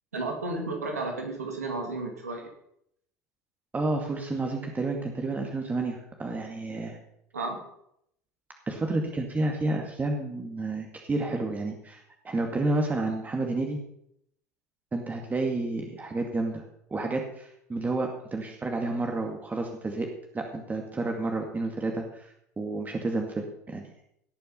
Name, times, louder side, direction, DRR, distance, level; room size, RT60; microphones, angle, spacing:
voice 1, 0.1-2.4 7.3-7.6, right 2 dB, 85° right, 2 dB, 2.8 m, -32 dB
voice 2, 3.7-7.0 8.7-13.8 14.9-16.6 16.9-20.1 20.3-23.9, right 2 dB, 20° right, 2 dB, 2.3 m, -30 dB
18.5 x 6.8 x 5.6 m, 0.73 s
hypercardioid pair, 70°, 8 cm